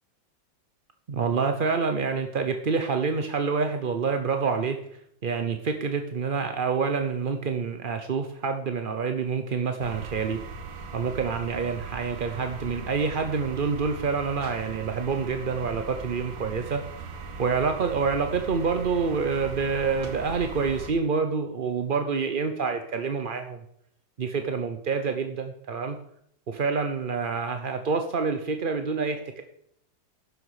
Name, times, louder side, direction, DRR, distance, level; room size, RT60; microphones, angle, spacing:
voice 1, 1.1-10.4 10.9-17.1 17.4-23.6 24.2-26.0 26.5-29.4, right 5 dB, 45° right, 6 dB, 0.7 m, -27 dB
sound 1, 9.8-20.9, right 4 dB, 85° right, 2.0 m, -39 dB
12.0 x 10.0 x 4.9 m, 0.71 s
omnidirectional pair, 2.0 m